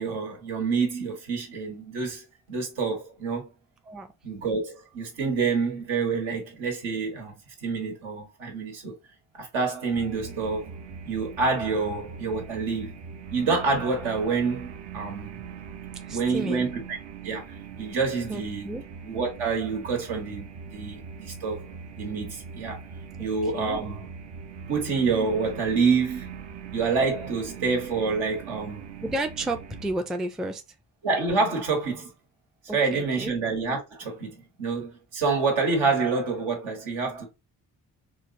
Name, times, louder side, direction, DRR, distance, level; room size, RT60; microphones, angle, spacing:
voice 1, 0.0-3.5 4.2-7.3 7.6-8.9 9.3-10.7 11.0-13.0 13.3-15.4 16.1-17.0 17.2-17.4 17.8-18.7 19.0-21.7 22.0-22.8 23.2-24.1 24.7-26.3 26.7-28.8 31.0-32.1 32.7-37.2, right 4 dB, 80° right, 1.1 m, -27 dB
sound 1, 9.9-29.9, right 6 dB, 60° right, 0.6 m, -41 dB
voice 2, 16.1-16.7 18.3-18.8 23.2-23.8 29.0-30.6 32.7-33.3, right 1 dB, ahead, 0.3 m, -32 dB
3.2 x 2.0 x 2.5 m
hypercardioid pair, 45°, 47 cm